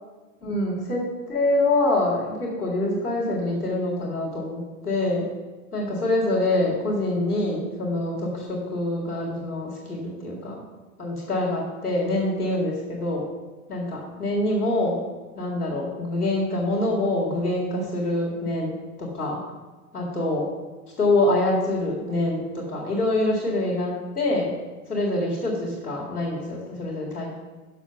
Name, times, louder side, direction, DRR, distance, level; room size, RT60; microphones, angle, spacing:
voice 1, 0.4-5.3 5.7-10.6 11.0-13.3 13.7-15.0 15.4-19.4 19.9-20.5 21.0-24.5 24.9-27.3, left 2 dB, 90° left, -4 dB, 2.0 m, -25 dB
6.6 x 5.8 x 5.8 m, 1.3 s
figure-of-eight pair, 90°, 44 cm